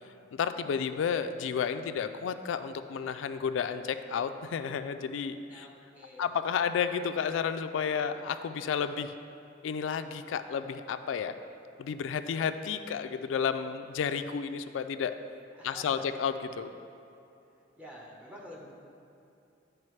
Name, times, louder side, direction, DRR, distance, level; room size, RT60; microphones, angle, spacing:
voice 1, 0.3-5.7 6.2-9.1 9.6-11.3 11.8-15.2 15.6-16.7, left 7 dB, 85° left, 9 dB, 0.3 m, -32 dB
voice 2, 5.5-6.3 15.5-16.0 17.8-18.7, equal, 10° right, -3 dB, 1.0 m, -48 dB
11.0 x 4.7 x 3.2 m, 2.7 s
head